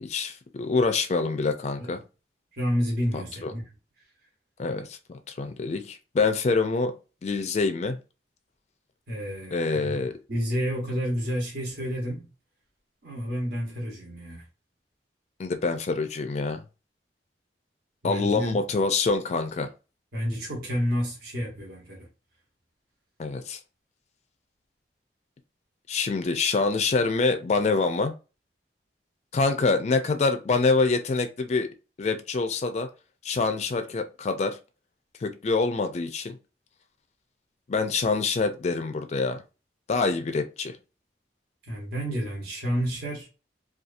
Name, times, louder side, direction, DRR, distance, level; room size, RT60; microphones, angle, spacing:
voice 1, 0.0-2.0 3.1-3.5 4.6-6.9 7.2-8.0 9.5-10.1 15.4-16.6 18.0-19.7 23.2-23.6 25.9-28.1 29.3-31.7 32.0-32.9 33.2-34.6 35.2-36.4 37.7-39.4 39.9-40.8, left 4 dB, 40° left, 0.4 m, -26 dB
voice 2, 2.6-3.6 9.1-10.0 10.3-12.3 13.0-14.4 18.0-18.6 20.1-22.1 41.7-43.3, equal, 60° right, 1.0 m, -30 dB
2.7 x 2.3 x 2.4 m
head